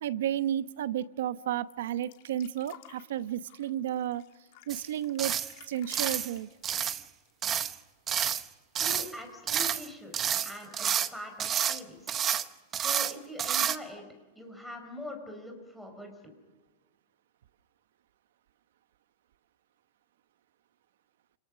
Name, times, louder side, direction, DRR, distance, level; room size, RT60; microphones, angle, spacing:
voice 1, 0.0-4.2 4.7-5.4 5.7-6.5, right 11 dB, 70° right, 14 dB, 1.0 m, -32 dB
sound 1, 1.7-8.1 8.4-8.5 8.8-9.5 10.3-10.4, left 13 dB, 45° left, 2.4 m, -54 dB
sound 2, 4.7-4.9 5.2-5.5 5.9-6.3 6.6-7.0 7.4-7.8 8.1-8.5 8.7-9.1 9.5-9.9 10.1-11.1 11.4-11.8 12.1-12.5 12.7-13.1 13.4-13.8, right 9 dB, 20° right, 0.8 m, -29 dB
voice 2, 8.8-10.1 10.4-12.2 12.7-14.0 14.4-16.3, left 1 dB, ahead, 3 dB, 4.4 m, -43 dB
29.0 x 28.0 x 6.3 m, 1.2 s
supercardioid pair, 175°, 0 cm